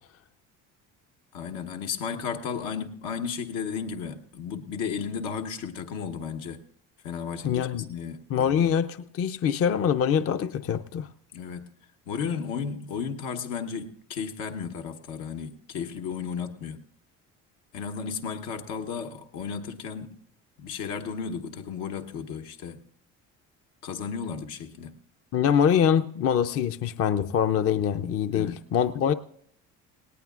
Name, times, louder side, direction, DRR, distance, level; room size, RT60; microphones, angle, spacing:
voice 1, 1.3-6.6 7.0-8.7 11.3-11.6 12.1-16.8 17.7-20.1 20.6-22.8 23.8-24.9 28.3-28.6, left 6 dB, 80° left, 1.1 m, -34 dB
voice 2, 7.4-7.9 8.3-11.1 25.3-29.1, left 8 dB, 45° left, 0.6 m, -24 dB
18.5 x 18.0 x 2.4 m
supercardioid pair, 95°, 34 cm